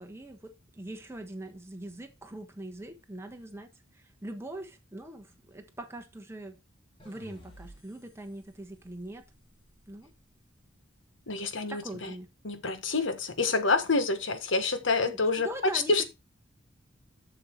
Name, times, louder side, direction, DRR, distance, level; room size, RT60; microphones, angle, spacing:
voice 1, 0.0-6.6 7.0-9.2 9.9-10.1 11.7-12.3 15.0-16.0, right 1 dB, 15° right, 1.4 m, -42 dB
sound 1, 7.0-10.2, equal, 25° left, 2.8 m, -55 dB
voice 2, 11.3-12.1 12.4-16.0, left 3 dB, 75° left, 1.3 m, -27 dB
7.0 x 6.6 x 4.5 m
head